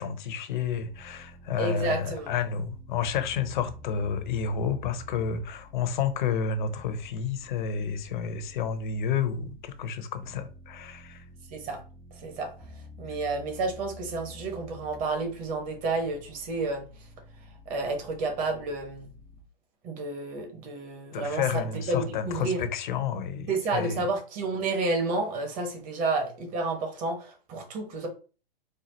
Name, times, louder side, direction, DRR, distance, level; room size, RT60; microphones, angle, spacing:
voice 1, 0.0-11.2 21.1-24.0, left 6 dB, 50° left, 0.8 m, -30 dB
sound 1, 0.6-9.8 10.2-19.4, left 2 dB, 5° left, 0.4 m, -49 dB
voice 2, 1.6-2.3 11.5-11.8 12.1-17.1 17.4-19.1 19.8-22.6 23.5-28.1, right 3 dB, 25° right, 1.2 m, -31 dB
4.4 x 2.3 x 3.9 m
hypercardioid pair, 130°, 30 cm